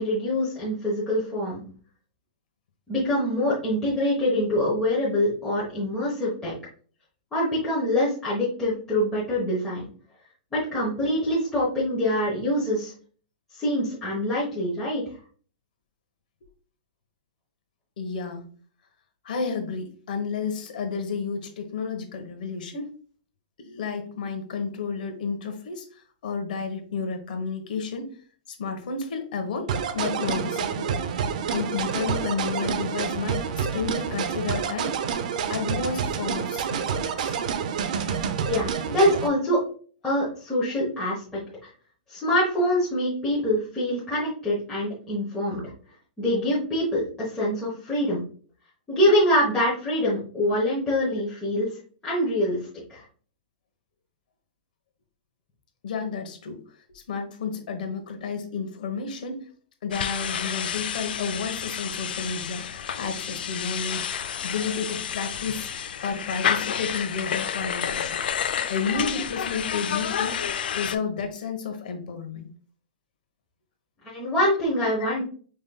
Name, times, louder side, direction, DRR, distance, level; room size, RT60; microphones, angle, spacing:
voice 1, 0.0-1.6 2.9-6.6 7.3-9.9 10.5-12.9 13.5-15.0 38.5-39.6 40.0-41.7 42.1-45.6 46.2-48.2 48.9-51.7 52.0-53.0 74.0-75.2, left 1 dB, 10° left, -8 dB, 1.0 m, -25 dB
voice 2, 18.0-18.5 19.2-22.9 23.6-28.1 28.5-30.9 31.5-35.0 35.5-37.4 55.8-56.6 56.9-59.5 59.8-65.7 66.0-68.2 68.7-70.4 70.7-72.5, left 5 dB, 65° left, 6 dB, 1.1 m, -31 dB
sound 1, 29.7-39.3, right 7 dB, 50° right, 0.5 m, -28 dB
sound 2, 59.9-71.0, left 8 dB, 90° left, 0.4 m, -30 dB
5.2 x 3.7 x 2.2 m, 0.43 s
supercardioid pair, 170°, 5 cm